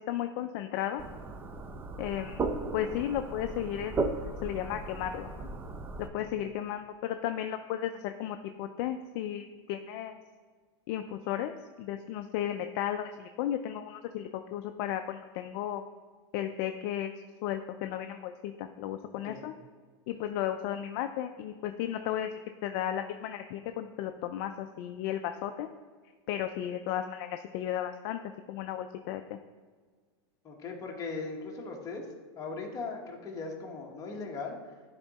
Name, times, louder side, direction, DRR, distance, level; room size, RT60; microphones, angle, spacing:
voice 1, 0.1-1.0 2.0-2.4 2.7-5.5 6.0-10.2 10.9-11.5 11.8-15.8 16.3-17.1 17.4-19.5 20.1-22.3 22.6-25.7 26.3-28.2 28.5-29.4, left 11 dB, 50° left, 7 dB, 0.4 m, -34 dB
sound 1, 1.0-6.1, right 3 dB, 15° right, 0.4 m, -36 dB
voice 2, 30.4-32.0 32.4-34.6, left 4 dB, 25° left, 0 dB, 1.2 m, -38 dB
10.5 x 3.7 x 4.1 m, 1.5 s
supercardioid pair, 140°, 14 cm